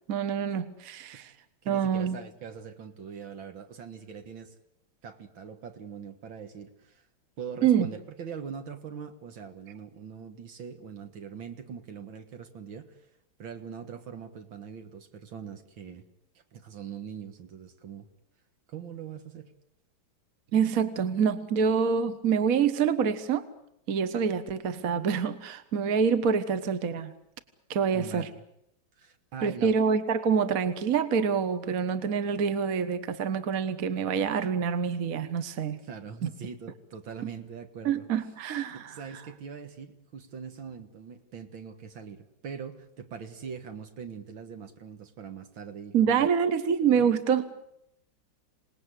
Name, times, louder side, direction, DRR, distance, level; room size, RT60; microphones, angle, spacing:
voice 1, 0.1-1.3 1.7-2.2 7.6-7.9 20.5-23.5 23.9-27.1 27.7-28.3 29.4-35.8 36.2-36.3 37.8-38.9 45.9-47.5, right 7 dB, 50° right, 11 dB, 1.5 m, -26 dB
voice 2, 1.6-4.5 5.0-7.0 7.4-13.0 13.4-16.1 16.5-18.1 18.7-19.5 27.9-28.4 29.0-29.8 35.8-38.1 38.7-46.3 46.9-47.1, right 7 dB, 70° right, 7 dB, 2.4 m, -42 dB
27.0 x 19.0 x 8.2 m, 0.77 s
omnidirectional pair, 2.2 m